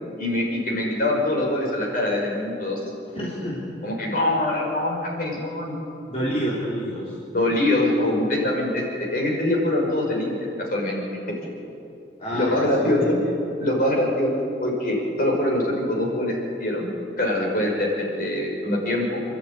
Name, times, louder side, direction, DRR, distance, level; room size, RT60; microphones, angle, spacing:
voice 1, 0.2-2.8 3.8-5.7 7.3-11.0 11.3-11.4 12.3-13.2 13.6-14.3 14.6-16.9 17.2-19.2, left 1 dB, 50° left, -1 dB, 5.6 m, -24 dB
voice 2, 3.2-3.8 6.1-7.1 12.2-13.1, equal, 35° left, -7 dB, 3.5 m, -28 dB
28.5 x 12.0 x 9.8 m, 2.7 s
head